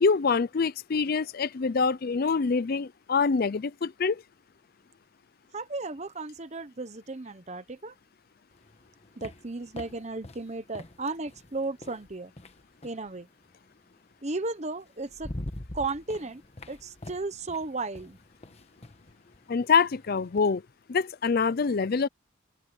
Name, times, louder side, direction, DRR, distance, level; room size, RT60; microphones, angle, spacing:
voice 1, 0.0-4.2 19.5-20.6 20.9-22.1, left 5 dB, 45° left, 0.5 m, -25 dB
voice 2, 5.5-7.9 9.2-12.3 12.8-13.3 14.2-15.3 15.7-16.4 16.7-18.2, right 3 dB, 35° right, 1.0 m, -35 dB
sound 1, 8.5-13.1 14.4-14.5 14.9-20.5, left 1 dB, 30° left, 1.2 m, -44 dB
open air
head